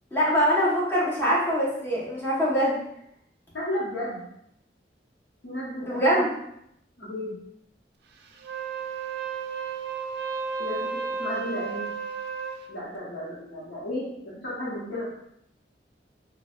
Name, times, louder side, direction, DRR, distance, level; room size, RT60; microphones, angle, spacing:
voice 1, 0.1-2.8 5.8-6.3, equal, 10° left, -8 dB, 0.9 m, -23 dB
voice 2, 3.5-4.2 5.4-6.3 7.0-7.4 10.6-11.9 12.7-15.1, left 1 dB, 85° left, -9 dB, 0.9 m, -33 dB
Wind instrument woodwind instrument, 8.4-12.6, right 5 dB, 65° right, 0.3 m, -33 dB
4.1 x 2.2 x 2.3 m, 0.76 s
head